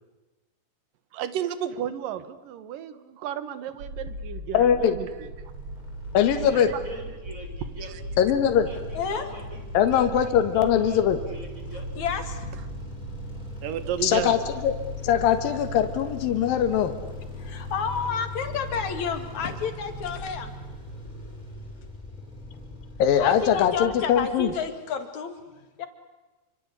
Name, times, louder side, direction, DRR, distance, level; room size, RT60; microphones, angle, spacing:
voice 1, 1.1-5.3 6.2-6.8 7.6-8.0 13.6-14.4, right 10 dB, 70° right, 13 dB, 2.9 m, -33 dB
sound 1, 3.8-20.3, right 1 dB, 50° right, 5.4 m, -40 dB
voice 2, 4.5-5.0 6.1-6.7 8.2-8.7 9.7-11.2 14.0-14.7 15.0-16.9 23.0-24.5, left 9 dB, 70° left, 7 dB, 3.2 m, -21 dB
sound 2, 5.1-24.6, left 2 dB, 10° left, 8.0 m, -41 dB
voice 3, 6.8-7.5 7.8-8.0 8.7-9.6 9.9-10.0 10.5-11.0 11.3-11.8, right 2 dB, 20° right, 4 dB, 4.7 m, -42 dB
voice 4, 8.9-9.3 11.7-12.6 17.4-20.5 23.2-25.9, left 6 dB, 55° left, 8 dB, 3.3 m, -31 dB
27.0 x 26.0 x 8.3 m, 1.2 s
omnidirectional pair, 4.3 m